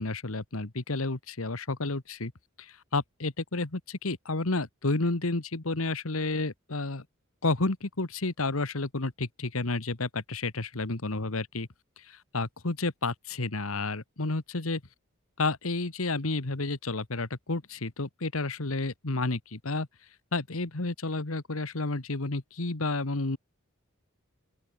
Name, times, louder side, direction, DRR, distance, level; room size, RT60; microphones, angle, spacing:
voice 1, 0.0-2.3 2.6-7.0 7.4-11.7 12.1-14.8 15.4-19.9 20.3-23.4, left 3 dB, 85° left, 1.7 m, -31 dB
open air
head